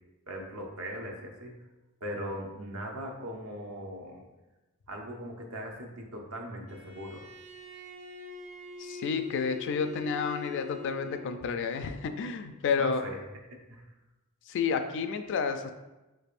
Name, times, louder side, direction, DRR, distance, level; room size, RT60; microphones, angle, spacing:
voice 1, 0.3-1.6 2.0-4.2 4.9-7.2 12.8-13.2 13.5-13.8, equal, 65° right, 1 dB, 0.7 m, -39 dB
Bowed string instrument, 6.7-11.5, left 3 dB, 30° right, 0.4 m, -43 dB
voice 2, 8.8-13.1 14.5-15.7, left 5 dB, 55° left, 8 dB, 0.3 m, -30 dB
4.8 x 3.3 x 2.5 m, 1.1 s
head